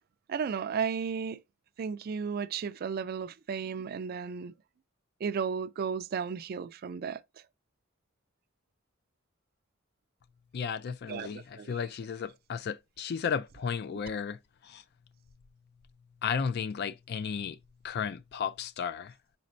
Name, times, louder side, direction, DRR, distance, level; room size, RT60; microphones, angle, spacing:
voice 1, 0.3-1.4 1.8-4.5 5.2-7.2 11.1-11.8 13.9-14.0, right 6 dB, 50° right, 0.3 m, -34 dB
voice 2, 10.5-14.4 14.6-14.8 16.2-17.6 17.8-19.1, left 6 dB, 55° left, 0.4 m, -34 dB
5.1 x 4.2 x 2.5 m
head